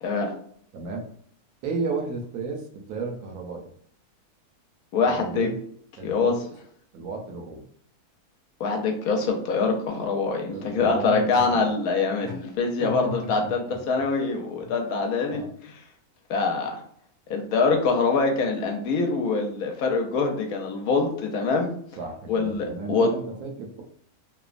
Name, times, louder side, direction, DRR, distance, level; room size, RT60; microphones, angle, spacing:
voice 1, 0.0-0.3 4.9-5.5 6.0-6.3 8.6-15.4 16.3-16.8 17.3-21.7 22.3-23.1, left 4 dB, 75° left, 2 dB, 1.0 m, -24 dB
voice 2, 0.7-1.0 1.6-3.7 5.0-5.5 6.0-6.4 6.9-7.6 10.5-11.7 12.2-12.4 12.8-13.8 14.6-14.7 15.2-15.5 22.0-23.8, right 3 dB, 75° right, 2 dB, 1.0 m, -34 dB
2.9 x 2.1 x 2.4 m, 0.65 s
omnidirectional pair, 1.6 m